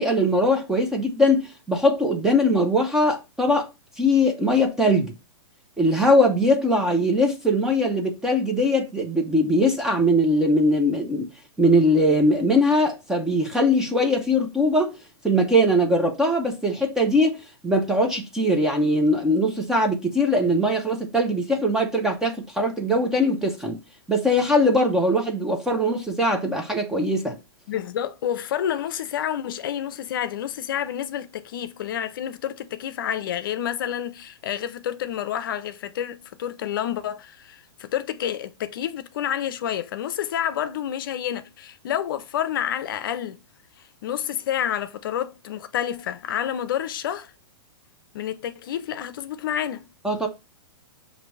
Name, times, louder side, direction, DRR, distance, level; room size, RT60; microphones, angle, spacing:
voice 1, 0.0-3.7 4.0-5.1 5.8-11.3 11.6-15.0 15.2-23.8 24.1-27.4 50.0-50.3, equal, 5° right, 0.4 m, -21 dB
voice 2, 27.7-43.4 44.0-47.3 48.1-49.9, left 10 dB, 50° left, 0.5 m, -29 dB
6.4 x 2.6 x 3.1 m
hypercardioid pair, 160°, 14 cm